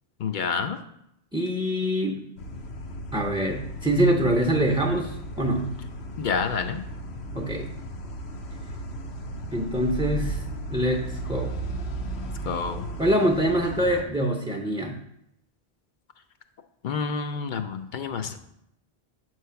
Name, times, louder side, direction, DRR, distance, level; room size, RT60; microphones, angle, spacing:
voice 1, 0.2-0.8 6.2-6.8 12.4-12.8 16.8-18.4, left 5 dB, 60° left, 8 dB, 0.6 m, -28 dB
voice 2, 1.3-2.2 3.1-5.7 7.3-7.7 9.5-10.4 10.7-11.5 13.0-15.0, right 1 dB, 5° right, 0 dB, 0.5 m, -24 dB
sound 1, 2.4-14.0, right 1 dB, 85° left, 1.0 m, -35 dB
7.4 x 3.2 x 5.6 m, 0.77 s
omnidirectional pair, 1.0 m